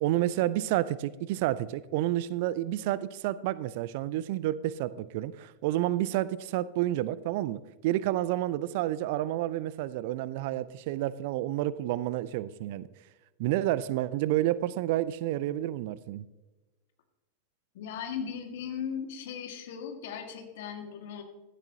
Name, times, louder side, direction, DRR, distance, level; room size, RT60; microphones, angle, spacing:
voice 1, 0.0-12.9 13.4-16.2, right 14 dB, 50° right, 18 dB, 0.5 m, -30 dB
voice 2, 17.7-21.2, left 7 dB, 55° left, 5 dB, 1.9 m, -37 dB
16.0 x 12.5 x 2.8 m, 1.1 s
figure-of-eight pair, 90°, 0 cm